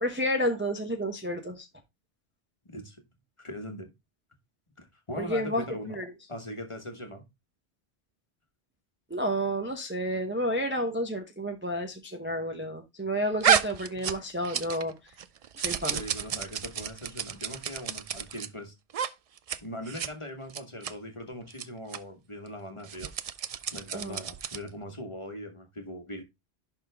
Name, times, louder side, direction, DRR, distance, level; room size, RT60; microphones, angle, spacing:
voice 1, 0.0-1.7 5.2-6.1 9.1-14.9 15.6-16.0 23.9-24.2, equal, 10° right, 0.7 m, -30 dB
voice 2, 2.6-3.0 3.4-3.9 4.8-6.0 6.3-7.2 13.9-14.0 15.9-18.7 19.6-23.1 23.7-26.2, left 1 dB, 25° left, 1.4 m, -40 dB
sound 1, 13.4-14.9 15.2-18.5 18.9-19.1 19.4-19.6 19.9-20.1 20.5-20.9 21.5-21.6 21.9-22.0 22.8-24.7, right 8 dB, 60° right, 0.3 m, -30 dB
11.0 x 3.7 x 3.4 m
omnidirectional pair, 1.2 m